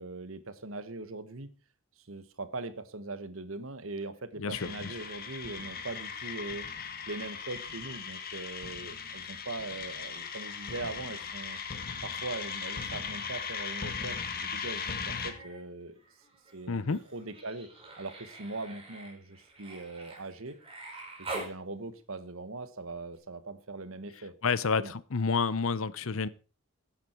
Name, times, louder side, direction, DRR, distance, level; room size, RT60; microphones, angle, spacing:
voice 1, 0.0-1.5 2.0-6.7 7.1-11.6 12.0-16.0 16.5-17.7 18.0-20.6 21.2-24.3 24.8-24.9, right 2 dB, 70° right, 1.4 m, -41 dB
voice 2, 4.4-4.9 16.7-17.0 24.4-26.3, left 5 dB, 70° left, 0.7 m, -29 dB
sound 1, 4.5-15.3, left 6 dB, 45° left, 1.7 m, -38 dB
Human voice, 14.9-15.6 15.9-21.6 23.1-23.2, right 2 dB, 25° right, 4.9 m, -45 dB
13.5 x 10.5 x 4.5 m
head